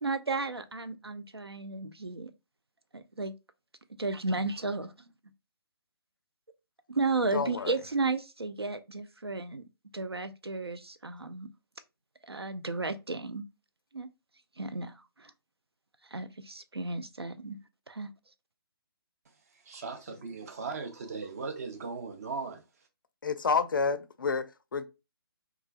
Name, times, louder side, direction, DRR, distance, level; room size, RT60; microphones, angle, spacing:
voice 1, 0.0-2.3 2.9-3.3 4.0-5.1 6.9-9.6 9.9-11.5 12.2-13.4 13.9-14.1 14.6-15.3 16.1-17.6 17.9-18.1, right 3 dB, 90° right, 0.4 m, -33 dB
voice 2, 7.3-7.7 23.2-24.5 24.7-24.9, left 5 dB, 55° left, 0.4 m, -29 dB
voice 3, 19.6-22.6, right 4 dB, 40° right, 0.6 m, -38 dB
3.0 x 2.3 x 2.3 m
figure-of-eight pair, 140°, 13 cm